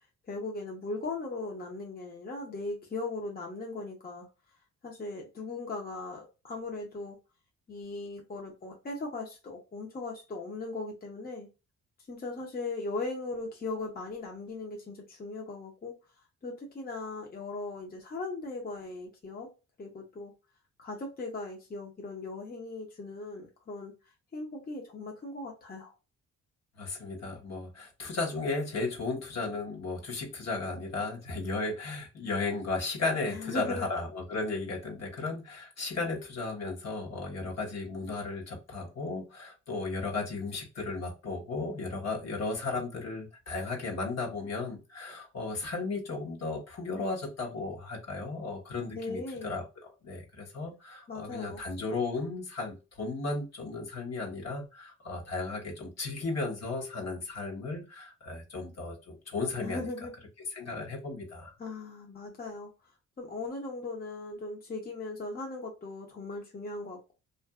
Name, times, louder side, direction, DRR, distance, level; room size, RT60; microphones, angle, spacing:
voice 1, 0.3-4.3 4.8-7.2 7.7-11.5 12.1-15.9 16.4-19.5 19.8-20.3 20.8-23.9 24.3-25.9 33.3-33.9 48.9-49.5 51.1-51.6 59.6-60.1 61.6-62.7 63.2-67.1, left 3 dB, 30° left, 0.8 m, -38 dB
voice 2, 26.8-49.6 50.0-59.9 60.5-61.5, left 3 dB, 55° left, 1.1 m, -35 dB
2.6 x 2.5 x 2.3 m
cardioid pair, 85°, 31 cm